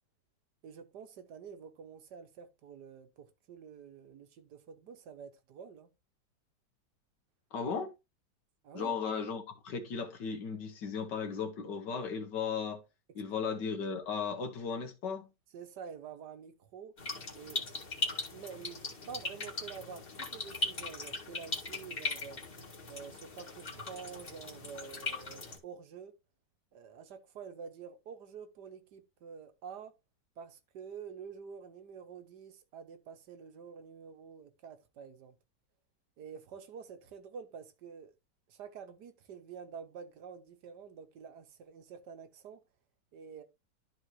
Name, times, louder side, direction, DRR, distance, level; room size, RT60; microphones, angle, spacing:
voice 1, 0.6-5.9 8.6-9.0 15.5-16.9 17.3-17.6 18.3-20.1 20.3-22.4 22.9-26.1 26.7-29.9 30.4-35.3 36.2-38.1 38.5-42.6 43.1-43.4, right 6 dB, 70° right, 1.5 m, -48 dB
voice 2, 7.5-7.9 8.7-12.8 13.2-15.3, left 6 dB, 75° left, 1.7 m, -36 dB
sound 1, 17.0-25.6, left 3 dB, 30° left, 1.9 m, -39 dB
12.0 x 4.5 x 3.0 m
omnidirectional pair, 1.9 m